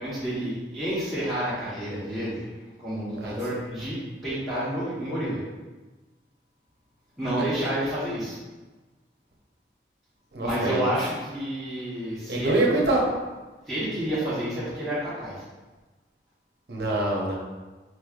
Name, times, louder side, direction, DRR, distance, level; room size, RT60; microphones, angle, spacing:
voice 1, 0.0-2.5 2.8-5.4 7.2-8.4 10.4-12.6 13.7-15.4, right 1 dB, ahead, -13 dB, 1.0 m, -29 dB
voice 2, 10.3-10.9 12.3-13.0 16.7-17.3, right 2 dB, 65° right, -2 dB, 0.8 m, -25 dB
4.5 x 3.2 x 2.4 m, 1.2 s
head